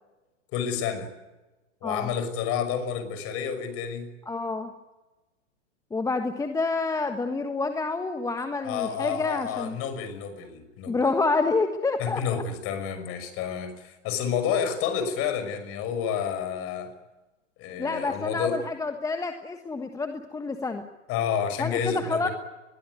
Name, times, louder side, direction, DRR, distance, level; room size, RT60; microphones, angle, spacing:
voice 1, 0.5-1.1 1.8-4.1 8.6-11.0 12.0-16.9 17.6-18.6 21.1-22.3, left 7 dB, 35° left, 10 dB, 6.0 m, -30 dB
voice 2, 1.8-2.1 4.3-4.7 5.9-9.8 10.9-12.4 17.8-20.8 21.6-22.3, left 3 dB, 10° left, 7 dB, 1.4 m, -28 dB
24.0 x 22.0 x 9.5 m, 1.1 s
figure-of-eight pair, 110°, 38 cm